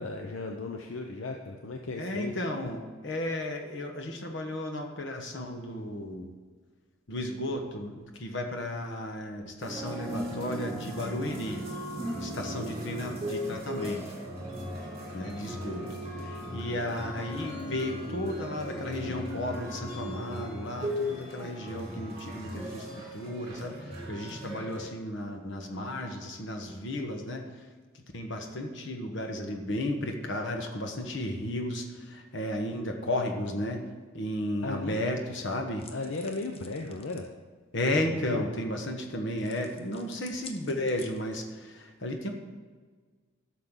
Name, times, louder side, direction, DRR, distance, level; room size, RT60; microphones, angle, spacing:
voice 1, 0.0-2.3 34.6-35.0 35.9-37.3 37.7-38.5, left 3 dB, 75° left, 3 dB, 0.7 m, -36 dB
voice 2, 2.0-6.3 7.1-11.6 12.2-14.0 15.1-15.9 16.1-27.5 27.9-33.8 34.1-35.9 37.7-42.3, left 1 dB, 55° left, 3 dB, 1.2 m, -34 dB
sound 1, 9.6-24.8, equal, 30° right, 2.4 m, -37 dB
sound 2, 35.8-37.3 39.4-41.5, left 5 dB, 30° left, 0.6 m, -50 dB
12.0 x 6.5 x 3.8 m, 1.5 s
head